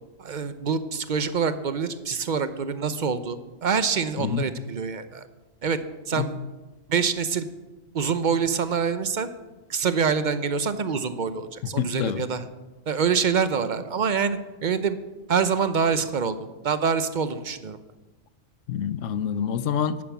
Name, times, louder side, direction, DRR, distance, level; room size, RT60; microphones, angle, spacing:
voice 1, 0.2-5.2 5.6-5.8 6.1-6.4 6.9-7.5 7.9-9.3 9.7-12.4 12.9-15.0 15.3-16.4 16.6-17.8, right 6 dB, 45° right, 12 dB, 0.8 m, -25 dB
voice 2, 4.2-4.5 6.2-6.3 11.6-12.3 18.7-20.0, left 8 dB, 80° left, 15 dB, 1.1 m, -27 dB
11.0 x 11.0 x 7.3 m, 1.2 s
omnidirectional pair, 1.3 m